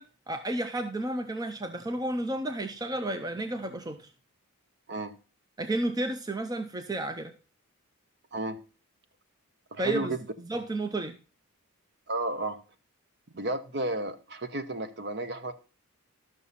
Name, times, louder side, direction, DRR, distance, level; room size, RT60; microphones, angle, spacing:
voice 1, 0.0-4.1 5.6-7.3 9.8-10.2 10.4-11.2, right 1 dB, 15° right, 0.6 m, -32 dB
voice 2, 9.7-10.3 12.1-12.6 13.3-15.5, right 2 dB, 50° right, 1.0 m, -32 dB
12.5 x 6.3 x 4.1 m
head